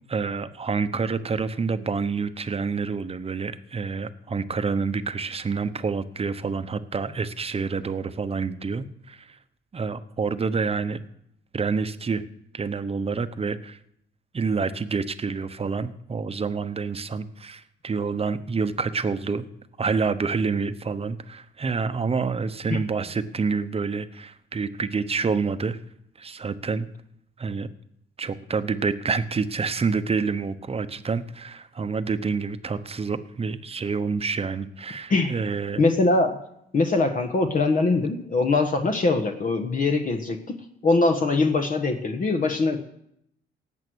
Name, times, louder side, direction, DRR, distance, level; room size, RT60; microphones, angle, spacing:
voice 1, 0.1-9.4 9.7-11.0 11.5-12.2 12.5-13.8 14.3-19.5 19.8-25.8 26.2-26.9 27.4-27.7 28.2-35.8, right 5 dB, 30° right, 11 dB, 0.9 m, -28 dB
voice 2, 35.8-36.4 36.7-40.6 40.8-42.8, left 3 dB, 45° left, 4 dB, 1.3 m, -22 dB
18.0 x 8.0 x 6.3 m, 0.76 s
cardioid pair, 90°, 20 cm